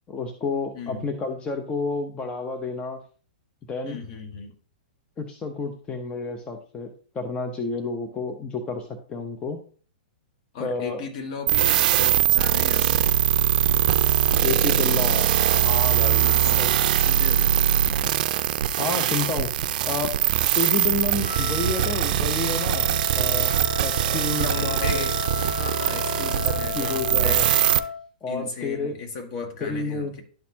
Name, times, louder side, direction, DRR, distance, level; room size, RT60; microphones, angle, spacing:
voice 1, 0.1-3.0 3.7-4.0 5.2-9.6 10.6-11.0 14.4-16.7 18.8-19.5 19.8-20.1 20.6-23.5 23.8-25.1 26.4-27.5 28.2-29.0 29.6-30.1, left 3 dB, 20° left, 5 dB, 0.8 m, -30 dB
voice 2, 0.7-1.1 3.8-4.5 10.5-13.1 16.0-16.5 17.0-17.5 24.3-25.2 25.5-27.9 28.3-30.2, left 3 dB, 50° left, 4 dB, 1.6 m, -35 dB
sound 1, 11.5-27.8, right 11 dB, 55° right, 0.4 m, -22 dB
Wind instrument woodwind instrument, 21.2-28.0, left 5 dB, 80° left, 3.6 m, -33 dB
11.5 x 4.2 x 2.8 m, 0.41 s
hypercardioid pair, 125°, 5 cm